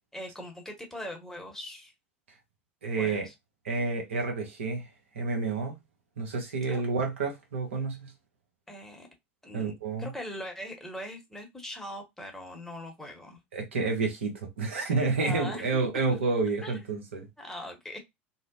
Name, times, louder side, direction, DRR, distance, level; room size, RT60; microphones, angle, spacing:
voice 1, 0.0-1.9 3.0-3.3 6.7-6.8 8.7-9.1 9.4-9.7 10.0-13.4 15.2-15.9 16.6-16.8 17.4-18.0, left 1 dB, 5° left, 0.9 m, -41 dB
voice 2, 2.8-3.3 3.6-4.9 5.1-5.7 6.2-8.1 9.5-10.1 13.5-17.3, right 4 dB, 80° right, 0.8 m, -29 dB
2.7 x 2.0 x 2.5 m
figure-of-eight pair, 75°, 7 cm